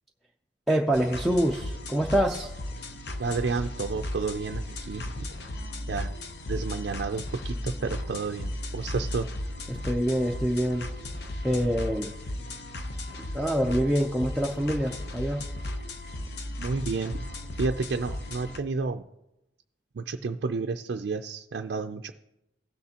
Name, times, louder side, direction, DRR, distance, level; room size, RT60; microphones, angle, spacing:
voice 1, 0.7-2.5 9.7-10.9 11.4-12.1 13.3-15.4, equal, ahead, 0 dB, 0.4 m, -25 dB
sound 1, 0.9-18.6, left 1 dB, 65° left, 0.7 m, -36 dB
voice 2, 3.2-5.3 5.9-6.1 6.5-9.3 16.6-17.3 17.6-19.0 20.0-22.1, right 4 dB, 70° right, 5 dB, 0.4 m, -31 dB
16.5 x 6.6 x 2.8 m, 0.90 s
head